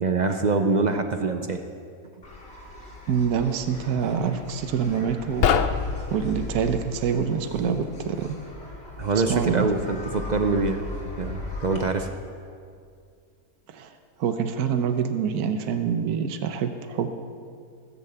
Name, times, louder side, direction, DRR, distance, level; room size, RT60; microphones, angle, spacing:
voice 1, 0.0-1.6 9.0-10.8 11.2-12.1, right 3 dB, 55° right, 6 dB, 0.4 m, -24 dB
sound 1, 2.2-11.8, left 2 dB, 40° left, 2.9 m, -40 dB
voice 2, 3.1-5.5 6.1-8.3 9.3-9.7 13.7-13.9 14.2-17.1, right 7 dB, 75° right, 8 dB, 1.3 m, -26 dB
sound 2, 5.2-6.9, left 7 dB, 60° left, 0.6 m, -25 dB
19.0 x 7.2 x 7.9 m, 2.3 s
omnidirectional pair, 1.7 m